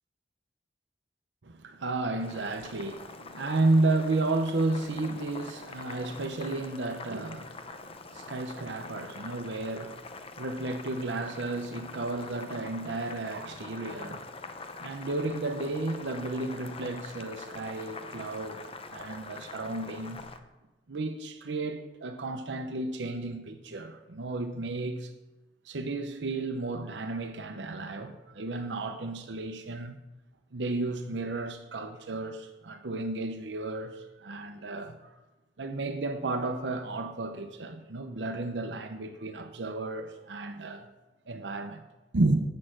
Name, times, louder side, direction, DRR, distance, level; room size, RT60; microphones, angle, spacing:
voice 1, 1.4-10.1 10.4-14.2 14.8-18.6 18.9-20.2 20.9-25.1 25.6-30.0 30.5-35.2 35.6-40.9 41.3-41.8 42.1-42.4, right 2 dB, 85° right, 0.8 m, -32 dB
Boiling, 2.2-20.4, left 3 dB, 35° left, 0.7 m, -44 dB
8.5 x 6.5 x 7.6 m
head